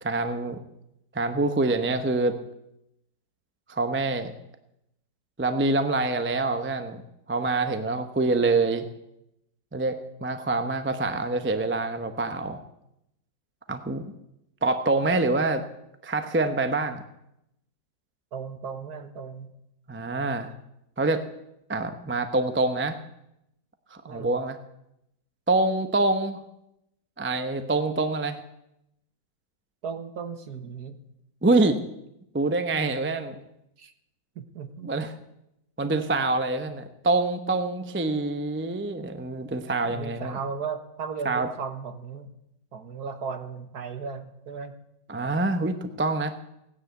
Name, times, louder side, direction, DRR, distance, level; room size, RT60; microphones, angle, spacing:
voice 1, 0.0-0.6 1.1-2.4 3.7-4.3 5.4-7.0 7.3-8.9 9.7-12.6 13.7-14.1 14.6-15.6 16.0-17.0 19.9-20.5 21.0-21.3 21.7-23.0 23.9-24.6 25.5-26.4 27.2-28.4 31.4-31.8 32.3-33.4 34.8-35.1 35.8-40.4 41.2-41.5 45.1-46.3, right 2 dB, 10° right, 8 dB, 0.5 m, -25 dB
voice 2, 18.3-19.5 24.0-24.3 29.8-31.0 33.8-33.9 34.3-34.9 39.9-42.3 42.7-44.7, right 5 dB, 60° right, 8 dB, 1.7 m, -36 dB
17.0 x 9.9 x 8.3 m, 0.84 s
omnidirectional pair, 2.0 m